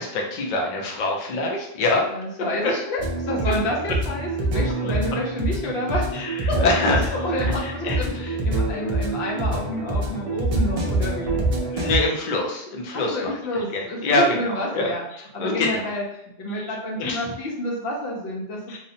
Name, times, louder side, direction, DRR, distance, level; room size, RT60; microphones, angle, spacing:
voice 1, 0.0-2.1 2.6-2.7 3.4-3.5 4.8-4.9 6.1-7.1 7.4-8.0 11.7-13.3 13.7-14.4 14.7-15.8 16.5-17.3 18.7-18.8, left 2 dB, 55° left, 0 dB, 0.6 m, -25 dB
voice 2, 2.1-6.5 7.1-11.3 12.9-15.0 15.3-16.0 16.4-18.8, left 1 dB, 75° left, -2 dB, 0.9 m, -29 dB
sound 1, 3.0-12.0, right 2 dB, 55° right, 0.4 m, -25 dB
2.7 x 2.1 x 2.6 m, 0.75 s
omnidirectional pair, 1.1 m